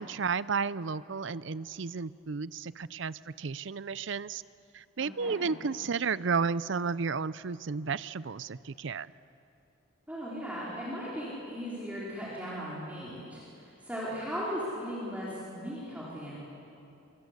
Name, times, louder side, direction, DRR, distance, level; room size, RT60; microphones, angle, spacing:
voice 1, 0.0-4.4 4.7-9.1, right 5 dB, 60° right, 17 dB, 0.5 m, -32 dB
voice 2, 5.0-5.5 10.1-16.4, equal, 5° right, -8 dB, 4.4 m, -37 dB
25.5 x 24.5 x 8.3 m, 2.8 s
head